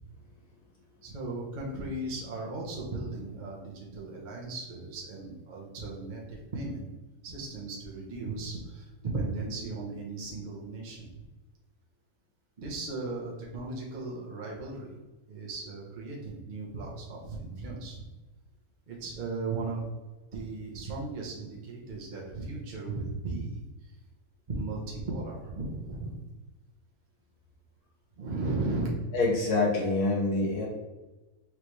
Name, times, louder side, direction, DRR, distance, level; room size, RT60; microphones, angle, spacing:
voice 1, 1.0-6.9 7.2-11.3 12.6-15.0 15.3-18.0 18.9-19.8 20.3-24.0 24.5-26.2 28.2-28.9, right 3 dB, 40° right, -4 dB, 0.8 m, -36 dB
voice 2, 29.1-30.7, left 2 dB, 85° left, -4 dB, 1.7 m, -26 dB
4.7 x 3.3 x 3.0 m, 1.1 s
omnidirectional pair, 1.6 m